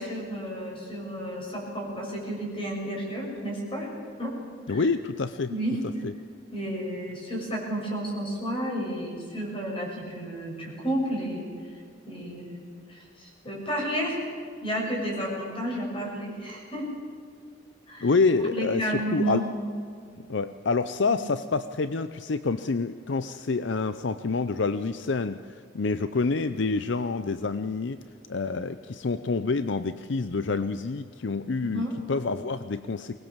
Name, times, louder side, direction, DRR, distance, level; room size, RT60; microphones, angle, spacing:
voice 1, 0.0-3.9 4.2-4.3 4.7-4.9 5.5-5.8 6.5-11.8 12.0-14.2 14.6-16.8 17.9-18.1 18.5-19.4 21.1-21.2 31.6-32.0, right 1 dB, 25° left, -1 dB, 6.8 m, -32 dB
voice 2, 4.7-5.5 6.0-6.1 18.0-19.4 20.3-28.0 28.3-33.2, left 4 dB, 65° left, 12 dB, 0.6 m, -27 dB
23.0 x 20.0 x 7.3 m, 2.3 s
head